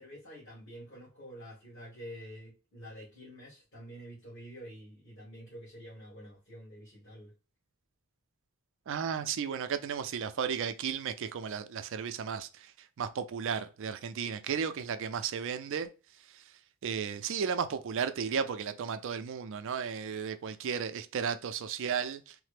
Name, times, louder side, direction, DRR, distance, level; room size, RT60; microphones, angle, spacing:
voice 1, 0.0-7.3, equal, 55° left, 1.5 m, -48 dB
voice 2, 8.9-15.9 16.3-16.4 16.8-22.4, right 7 dB, 60° right, 0.4 m, -34 dB
3.2 x 2.0 x 3.2 m
head